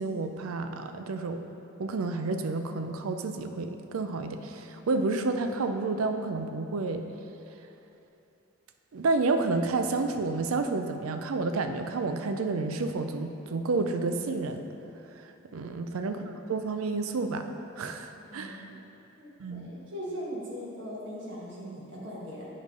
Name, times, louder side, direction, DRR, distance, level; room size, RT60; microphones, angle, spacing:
voice 1, 0.0-1.4 1.8-7.1 8.9-14.7 15.5-16.2 16.5-17.5 17.8-18.6 19.4-19.7, right 3 dB, 85° right, 7 dB, 0.4 m, -30 dB
voice 2, 16.0-16.3 18.3-18.7 19.2-22.5, equal, 55° right, -6 dB, 1.5 m, -40 dB
8.7 x 3.2 x 5.2 m, 2.8 s
head